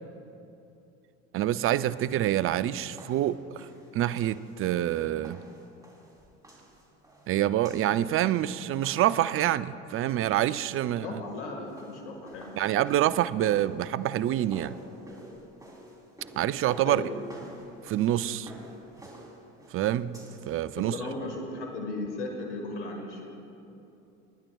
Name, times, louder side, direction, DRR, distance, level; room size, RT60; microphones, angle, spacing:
voice 1, 1.3-3.7 3.9-5.4 7.3-11.2 12.6-14.8 16.4-17.0 17.8-18.5 19.7-20.2 20.5-20.9, right 12 dB, 40° right, 0.5 m, -26 dB
sound 1, 1.8-9.3 11.5-20.6, right 1 dB, 10° right, 3.3 m, -50 dB
voice 2, 11.0-12.5 16.8-17.0 20.7-23.3, left 2 dB, 85° left, 1.7 m, -36 dB
29.5 x 10.5 x 2.3 m
hypercardioid pair, 75°, 34 cm